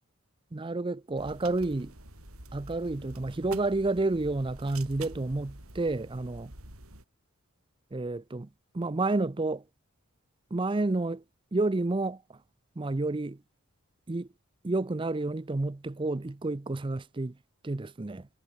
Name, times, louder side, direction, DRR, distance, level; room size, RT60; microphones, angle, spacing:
voice 1, 0.5-1.9 2.5-6.5 7.9-8.5 8.7-9.6 10.5-11.2 11.5-12.4 12.8-13.4 14.1-14.3 14.6-17.4 17.6-18.3, right 2 dB, 25° right, 0.5 m, -30 dB
sound 1, 1.2-7.0, right 2 dB, 75° right, 6.7 m, -47 dB
head